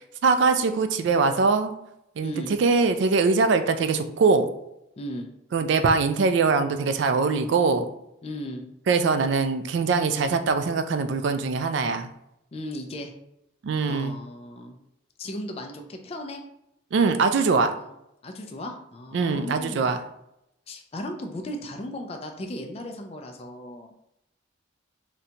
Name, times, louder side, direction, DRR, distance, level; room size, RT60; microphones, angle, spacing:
voice 1, 0.2-1.7 2.2-2.3 2.6-4.5 5.5-7.9 8.9-12.1 13.6-14.2 16.9-17.7 19.1-20.0, right 4 dB, 60° right, 9 dB, 0.3 m, -22 dB
voice 2, 2.2-2.6 5.0-5.3 8.2-8.7 12.5-13.1 13.9-14.8 15.2-16.4 17.7-17.9 18.2-19.9 20.7-23.9, left 1 dB, 30° left, 4 dB, 0.3 m, -36 dB
3.9 x 2.2 x 2.8 m, 0.81 s
head